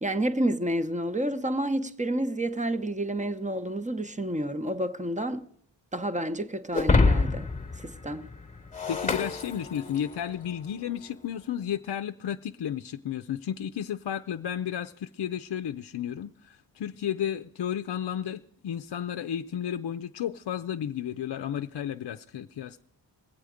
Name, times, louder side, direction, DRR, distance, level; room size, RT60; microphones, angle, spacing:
voice 1, 0.0-5.4 5.9-7.5 7.8-8.3, right 1 dB, 15° right, 0.8 m, -29 dB
Shatter, 6.7-10.2, left 3 dB, 20° left, 1.1 m, -26 dB
voice 2, 8.9-22.8, left 9 dB, 65° left, 0.5 m, -33 dB
21.0 x 8.1 x 5.0 m
cardioid pair, 55°, 43 cm